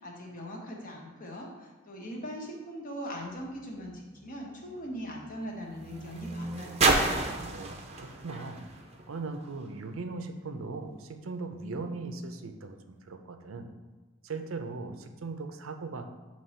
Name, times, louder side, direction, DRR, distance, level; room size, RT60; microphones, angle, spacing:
voice 1, 0.0-6.9, equal, 45° left, -1 dB, 1.1 m, -40 dB
sound 1, 3.3-9.8 10.6-10.7, right 3 dB, 30° right, 0.6 m, -32 dB
voice 2, 7.4-8.6 9.1-13.7 14.2-16.1, right 3 dB, 90° right, 6 dB, 0.6 m, -39 dB
7.4 x 3.0 x 4.3 m, 1.3 s
head